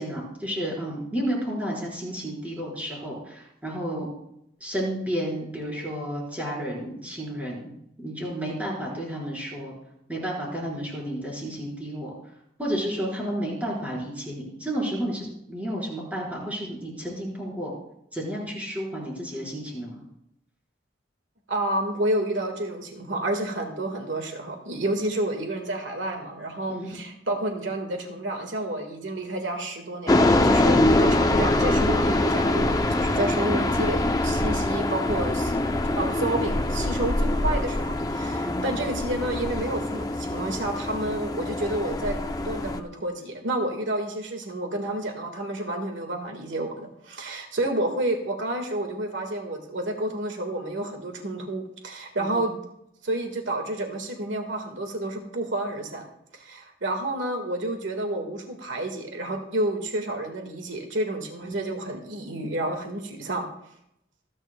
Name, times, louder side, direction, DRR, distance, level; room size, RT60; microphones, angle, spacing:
voice 1, 0.0-4.1 4.6-7.7 8.0-9.7 10.1-12.1 12.6-17.7 18.1-20.0 26.7-26.9 38.4-38.7 52.2-52.5 61.5-61.7, equal, 10° right, -4 dB, 4.5 m, -31 dB
voice 2, 21.5-35.5 36.0-52.5 53.0-56.1 56.3-63.5, right 1 dB, 75° right, 4 dB, 1.7 m, -30 dB
sound 1, 30.1-42.8, left 2 dB, 20° left, 0.5 m, -24 dB
26.5 x 9.6 x 2.3 m, 0.77 s
head